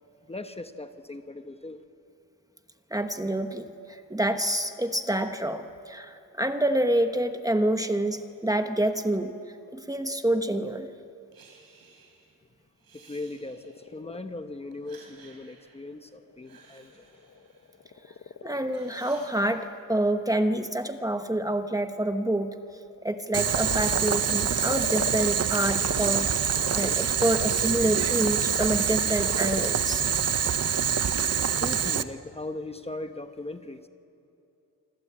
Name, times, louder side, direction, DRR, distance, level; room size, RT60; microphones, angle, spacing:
voice 1, 0.2-1.8 12.9-17.1 30.8-33.9, left 2 dB, 15° left, 7 dB, 1.0 m, -39 dB
voice 2, 2.9-9.3 9.7-10.9 18.4-22.5 23.0-30.0, right 1 dB, 10° right, 7 dB, 1.0 m, -27 dB
Breathing, 11.3-12.3 12.8-14.0 14.7-18.3 18.6-19.5, right 4 dB, 75° right, 5.5 m, -55 dB
Frog, 13.2-26.1 26.5-31.1, left 7 dB, 45° left, 0.9 m, -42 dB
Boiling, 23.3-32.0, right 8 dB, 45° right, 0.8 m, -26 dB
26.5 x 25.5 x 8.6 m, 2.7 s
wide cardioid pair, 165°, 35 cm